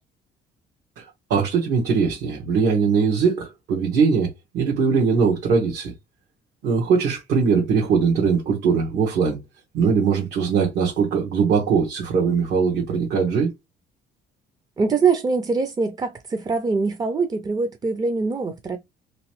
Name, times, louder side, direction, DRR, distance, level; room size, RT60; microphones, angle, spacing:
voice 1, 1.3-5.9 6.6-9.4 9.7-13.5, right 5 dB, 80° right, 1.2 m, -21 dB
voice 2, 14.8-18.8, right 4 dB, 25° right, 0.4 m, -23 dB
3.3 x 3.0 x 2.9 m
cardioid pair, 110°, 17 cm